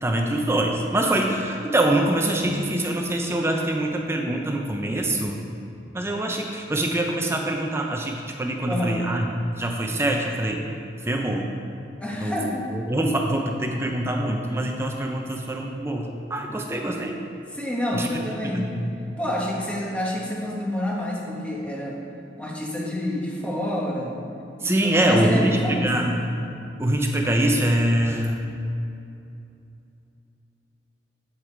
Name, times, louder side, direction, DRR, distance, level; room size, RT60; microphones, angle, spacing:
voice 1, 0.0-5.4 5.9-9.3 9.6-10.6 11.1-11.5 12.2-17.2 17.9-18.1 18.5-18.9 24.6-26.2 26.8-28.6, right 1 dB, 15° right, 2 dB, 0.6 m, -24 dB
voice 2, 8.7-9.0 12.0-12.7 17.5-18.7 19.2-22.0 22.4-24.1 24.6-26.2, left 1 dB, 5° left, -3 dB, 1.3 m, -28 dB
8.5 x 8.1 x 4.5 m, 2.7 s
head